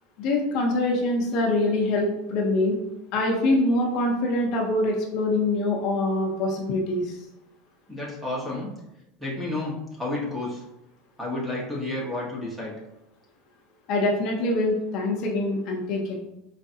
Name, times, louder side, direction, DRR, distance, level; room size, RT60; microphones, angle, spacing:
voice 1, 0.2-2.8 3.1-7.2 13.9-16.2, left 2 dB, 45° left, 0 dB, 0.6 m, -24 dB
voice 2, 7.9-8.7 9.2-10.6 11.2-12.7, left 2 dB, 5° right, -5 dB, 1.0 m, -31 dB
4.6 x 3.2 x 2.7 m, 0.89 s
supercardioid pair, 165°, 0 cm